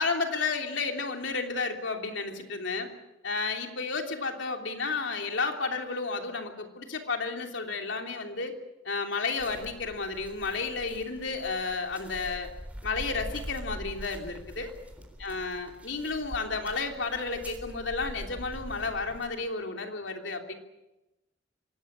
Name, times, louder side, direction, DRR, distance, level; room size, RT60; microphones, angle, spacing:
voice 1, 0.0-2.9 3.2-8.5 8.8-12.5 12.8-14.7 15.2-20.5, left 4 dB, 70° left, 3 dB, 3.2 m, -32 dB
sound 1, 9.4-19.2, equal, 10° right, 3.9 m, -43 dB
25.0 x 18.0 x 8.6 m, 0.97 s
head